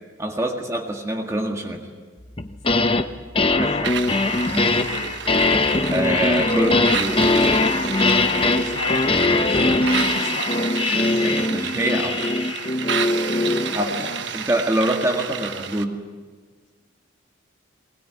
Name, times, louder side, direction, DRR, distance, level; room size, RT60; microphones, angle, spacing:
voice 1, 0.2-1.9 3.6-4.1 4.5-4.7 5.9-7.2 10.9-12.2 13.7-14.1 14.3-16.0, right 1 dB, 15° right, 2 dB, 1.8 m, -25 dB
sound 1, 2.4-3.1 3.4-13.8, left 2 dB, 25° left, 0.9 m, -21 dB
sound 2, 3.8-15.8, right 7 dB, 60° right, 1.3 m, -30 dB
voice 2, 4.5-5.2 8.2-10.8 11.1-11.3 13.7-14.3, left 2 dB, 85° left, -1 dB, 2.2 m, -36 dB
21.5 x 20.0 x 9.7 m, 1.5 s
head